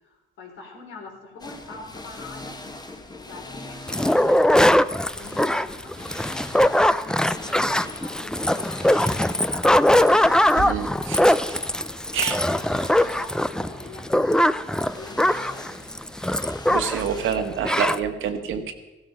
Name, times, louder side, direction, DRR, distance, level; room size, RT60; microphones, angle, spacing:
voice 1, 0.0-2.5 3.1-4.6 5.1-10.2 12.1-15.8, left 3 dB, 80° left, 0 dB, 4.1 m, -43 dB
sound 1, 1.4-17.3, left 2 dB, 20° left, 1.6 m, -41 dB
sound 2, 3.9-17.1 17.3-17.4 17.6-18.0, left 1 dB, 5° left, 0.5 m, -21 dB
sound 3, 10.2-11.8 12.2-12.4 13.0-13.3, right 5 dB, 65° right, 1.5 m, -38 dB
voice 2, 10.7-11.3 12.1-12.4 16.7-18.7, right 7 dB, 80° right, 7 dB, 1.6 m, -27 dB
15.5 x 13.0 x 5.6 m, 1.1 s
cardioid pair, 90°, 20 cm